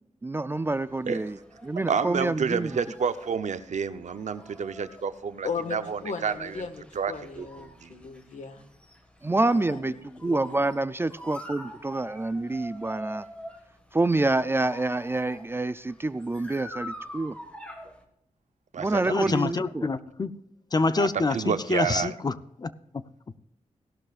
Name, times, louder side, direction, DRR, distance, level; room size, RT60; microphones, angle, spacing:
voice 1, 0.2-1.4 1.6-2.8 9.2-9.9 10.2-13.3 13.9-17.3 18.8-19.9, right 2 dB, 20° right, 14 dB, 0.4 m, -27 dB
sound 1, 0.6-18.0, equal, 10° left, 1.7 m, -45 dB
voice 2, 1.9-6.6 6.9-7.5 7.8-7.9 18.7-19.4 21.0-22.1, right 6 dB, 70° right, 11 dB, 0.8 m, -29 dB
voice 3, 5.4-5.8 6.0-8.7 9.4-10.6, left 5 dB, 70° left, 7 dB, 1.6 m, -37 dB
voice 4, 19.1-20.3 20.7-22.7, left 3 dB, 30° left, 13 dB, 0.6 m, -26 dB
17.0 x 12.0 x 2.5 m, 0.83 s
wide cardioid pair, 125°, 13 cm